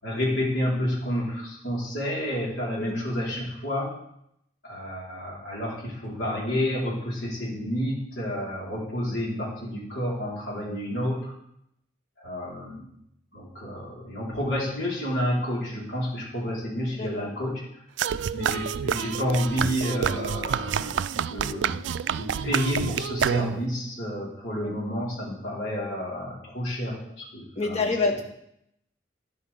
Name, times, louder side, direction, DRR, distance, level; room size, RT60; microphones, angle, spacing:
voice 1, 0.0-3.9 4.6-11.3 12.2-12.9 13.3-17.6 18.3-21.8 22.2-27.9, equal, 70° left, -5 dB, 4.7 m, -30 dB
voice 2, 16.9-17.3 24.6-24.7 27.6-28.2, left 3 dB, 35° left, 0 dB, 2.0 m, -27 dB
sound 1, 18.0-23.8, right 8 dB, 75° right, 0.3 m, -28 dB
12.5 x 11.0 x 3.7 m, 0.76 s
head